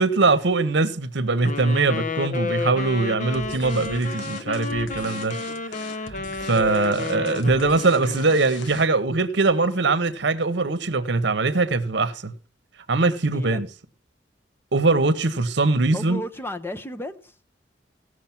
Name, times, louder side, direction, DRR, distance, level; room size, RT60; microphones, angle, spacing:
voice 1, 0.0-5.4 6.0-12.3 12.9-13.7 14.7-16.2, right 3 dB, 65° right, 1.0 m, -22 dB
Wind instrument woodwind instrument, 1.4-8.6, left 4 dB, 45° left, 0.9 m, -31 dB
sound 1, 3.3-9.1, left 3 dB, 85° left, 1.3 m, -41 dB
voice 2, 5.0-5.6 13.3-13.6 15.9-17.3, left 1 dB, 10° left, 0.7 m, -35 dB
17.0 x 6.4 x 5.8 m
head